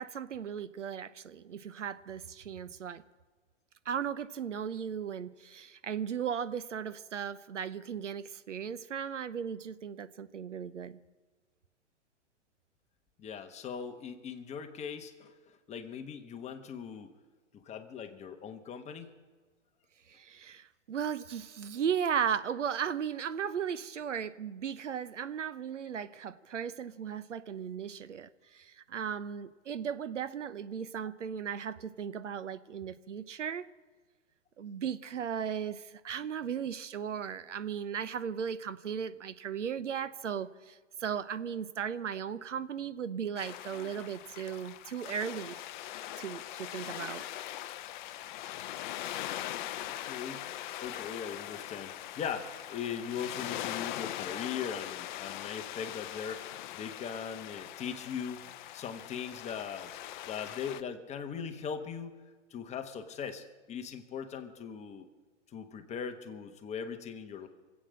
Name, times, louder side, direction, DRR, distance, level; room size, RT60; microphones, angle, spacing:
voice 1, 0.0-3.0 3.9-11.0 20.1-33.7 34.6-45.6 46.2-47.2, right 8 dB, 80° right, 14 dB, 0.9 m, -36 dB
voice 2, 13.2-15.3 15.7-17.1 17.5-19.1 43.8-43.9 49.8-50.5 50.8-58.4 58.7-59.9 60.3-62.2 62.5-65.1 65.5-67.5, left 7 dB, 20° left, 7 dB, 1.1 m, -40 dB
sound 1, 43.4-60.8, left 13 dB, 40° left, 0.6 m, -41 dB
25.0 x 8.4 x 6.3 m, 1.4 s
hypercardioid pair, 115°, 36 cm